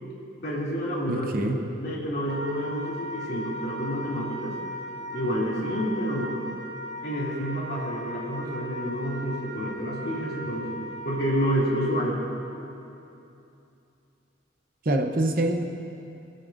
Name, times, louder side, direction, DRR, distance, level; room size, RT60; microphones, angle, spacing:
voice 1, 0.4-1.5 1.8-4.5 5.1-6.4 7.0-12.2, equal, 60° left, -6 dB, 2.7 m, -29 dB
voice 2, 1.1-1.6 14.8-15.6, right 1 dB, 50° right, 4 dB, 0.8 m, -25 dB
Wind instrument woodwind instrument, 2.3-12.1, equal, 70° right, 1.2 m, -38 dB
24.5 x 8.2 x 2.6 m, 2.7 s
head